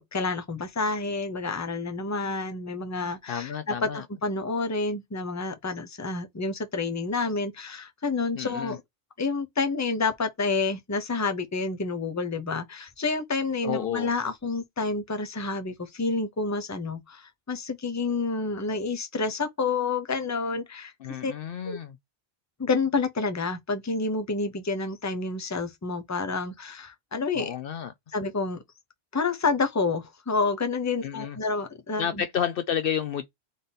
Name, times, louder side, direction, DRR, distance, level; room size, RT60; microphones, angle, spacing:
voice 1, 0.0-8.8 9.2-20.9 21.2-21.3 21.6-21.8 22.6-27.5 28.1-28.6 29.1-32.2, left 3 dB, 20° left, 0.7 m, -29 dB
voice 2, 3.3-4.0 8.3-8.8 13.6-14.1 21.0-22.0 27.3-27.9 31.0-31.4 32.0-33.3, left 9 dB, 65° left, 0.7 m, -31 dB
3.8 x 3.5 x 4.0 m
omnidirectional pair, 1.1 m